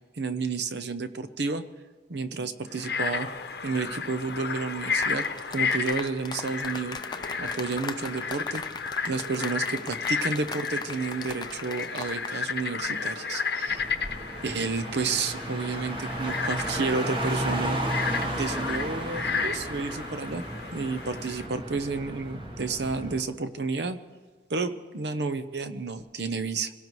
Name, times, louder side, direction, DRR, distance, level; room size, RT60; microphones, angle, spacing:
voice 1, 0.1-1.7 2.1-3.3 3.6-5.2 5.5-7.0 7.4-8.6 9.0-13.8 14.4-17.8 18.4-20.4 20.7-24.0 24.5-26.7, right 4 dB, 65° right, 11 dB, 0.8 m, -31 dB
Frog, 2.7-21.5, left 5 dB, 60° left, 0.9 m, -33 dB
sound 1, 4.9-12.4 12.6-12.9, left 4 dB, 25° left, 0.5 m, -40 dB
Car, 13.7-23.2, right 1 dB, 25° right, 1.2 m, -33 dB
26.5 x 17.0 x 3.2 m, 1.4 s
head